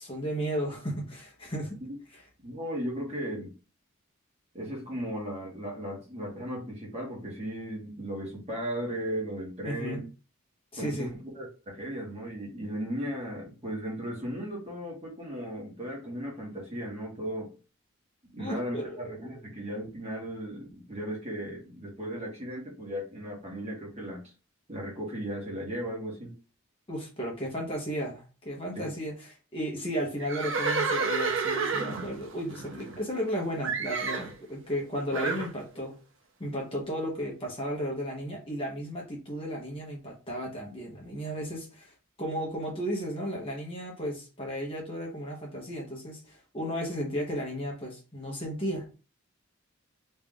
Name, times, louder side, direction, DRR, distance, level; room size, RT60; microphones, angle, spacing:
voice 1, 0.0-1.8 2.1-2.2 9.6-10.0 10.7-11.1 18.4-19.1 26.9-36.0 36.4-41.9 42.2-49.0, equal, 25° left, -2 dB, 1.2 m, -34 dB
voice 2, 2.4-3.5 4.5-10.0 10.8-17.5 18.2-24.2 24.7-26.3 28.7-28.9, equal, 30° right, -2 dB, 1.5 m, -36 dB
Livestock farm animals working animals, 30.2-33.3 33.6-34.3 35.1-35.5, right 4 dB, 60° right, 0.6 m, -30 dB
3.2 x 2.8 x 3.7 m, 0.32 s
head